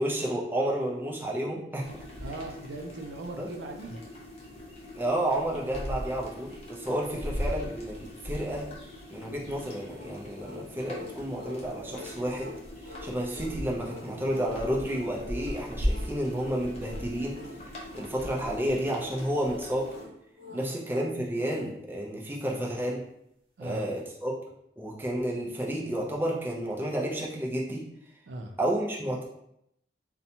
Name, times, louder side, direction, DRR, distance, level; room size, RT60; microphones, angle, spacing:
voice 1, 0.0-1.9 3.4-3.5 5.0-8.7 9.1-12.5 12.8-17.4 17.9-19.9 20.5-23.0 23.6-24.3 24.8-27.9 28.6-29.2, right 1 dB, 10° right, -3 dB, 0.4 m, -31 dB
sound 1, 1.8-20.0, equal, 35° left, 0.6 m, -39 dB
voice 2, 2.2-4.1 6.9-7.2 20.5-20.7 23.6-23.9 28.3-28.6, right 2 dB, 80° right, 4 dB, 0.3 m, -39 dB
sound 2, 9.8-21.7, left 4 dB, 55° right, 0.8 m, -47 dB
2.7 x 2.1 x 2.7 m, 0.78 s
head